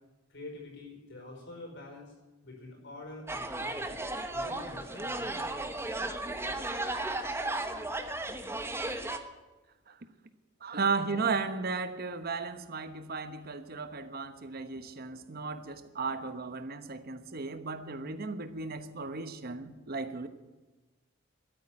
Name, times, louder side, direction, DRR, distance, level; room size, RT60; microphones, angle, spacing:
voice 1, 0.3-2.1 2.4-3.9 4.3-5.6, left 2 dB, 60° left, 5.2 m, -46 dB
sound 1, 3.3-9.2, right 2 dB, 15° right, 1.0 m, -35 dB
voice 2, 10.6-20.3, right 4 dB, 50° right, 1.1 m, -35 dB
13.0 x 9.2 x 9.7 m
head